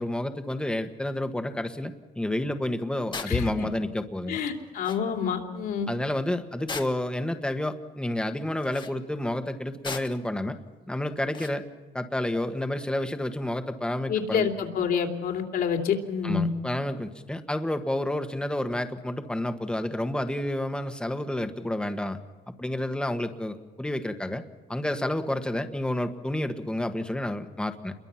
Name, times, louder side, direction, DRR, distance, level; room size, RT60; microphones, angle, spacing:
voice 1, 0.0-4.4 5.9-10.6 10.9-11.6 11.9-14.5 16.2-22.2 22.6-24.4 24.7-27.9, left 1 dB, 5° left, 8 dB, 1.5 m, -30 dB
sound 1, 3.1-3.4 4.5-4.6 4.8-5.0 6.7-7.2 8.6-9.0 9.8-10.3 11.3-11.6, left 4 dB, 30° left, 1.5 m, -37 dB
voice 2, 3.3-3.6 4.3-5.9 14.1-16.5, left 7 dB, 65° left, 3 dB, 3.1 m, -27 dB
28.0 x 22.5 x 5.9 m, 1.3 s
cardioid pair, 110°, 17 cm